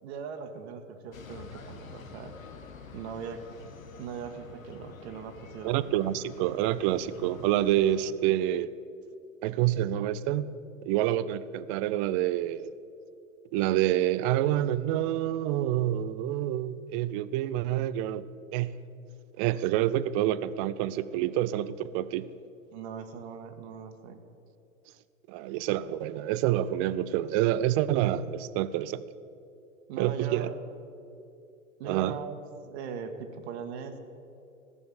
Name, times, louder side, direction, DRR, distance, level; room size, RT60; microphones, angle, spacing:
voice 1, 0.0-2.3 2.9-3.4 4.0-5.8 22.7-24.2 29.9-30.6 31.8-32.4 32.7-34.0, right 6 dB, 55° right, 7 dB, 1.5 m, -40 dB
sound 1, 1.1-8.1, left 4 dB, 80° left, 1.2 m, -47 dB
voice 2, 5.6-8.7 9.4-10.5 10.8-12.7 13.5-18.2 18.5-18.8 19.4-22.3 25.3-29.0 30.0-30.5 31.8-32.2, right 13 dB, 25° right, 16 dB, 0.3 m, -27 dB
15.0 x 6.9 x 8.7 m, 2.6 s
figure-of-eight pair, 100°, 40 cm